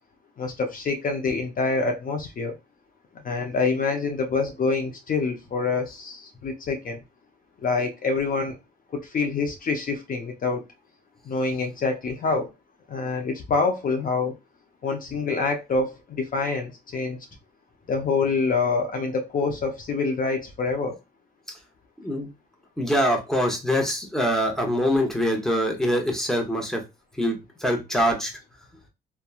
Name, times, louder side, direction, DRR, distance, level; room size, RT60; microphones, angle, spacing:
voice 1, 0.4-2.5 3.2-7.0 7.6-8.6 8.9-10.6 11.3-12.5 12.9-14.3 14.8-17.2 17.9-21.0, left 4 dB, 45° left, 0.6 m, -26 dB
voice 2, 22.0-22.3 22.8-26.8 27.2-28.3, equal, ahead, 0.8 m, -24 dB
2.9 x 2.2 x 2.3 m
cardioid pair, 90°, 20 cm